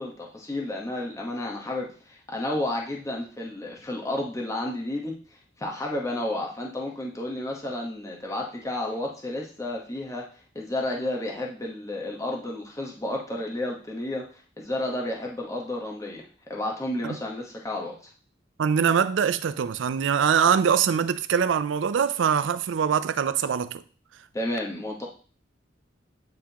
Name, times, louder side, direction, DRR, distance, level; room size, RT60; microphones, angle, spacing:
voice 1, 0.0-5.2 5.6-10.3 10.5-14.3 14.6-18.1 24.3-25.0, left 1 dB, 15° left, 1.1 m, -31 dB
voice 2, 18.6-23.8, right 7 dB, 80° right, 0.4 m, -23 dB
9.1 x 3.6 x 2.9 m
head